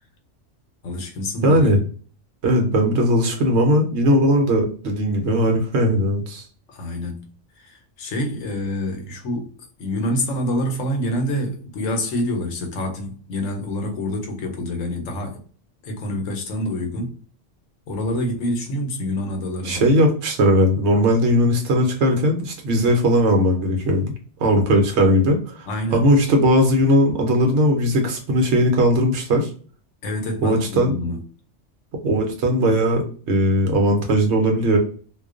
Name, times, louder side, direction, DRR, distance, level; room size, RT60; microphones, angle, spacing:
voice 1, 0.8-1.7 6.7-7.3 7.6-9.5 9.8-15.4 15.8-17.2 17.9-19.9 25.7-26.1 30.0-31.2, left 1 dB, 85° left, 1.1 m, -27 dB
voice 2, 1.4-1.8 2.4-6.4 19.6-24.1 24.4-29.5 30.4-31.0 32.0-34.8, equal, 65° right, 0.9 m, -18 dB
2.4 x 2.2 x 2.4 m
omnidirectional pair, 1.3 m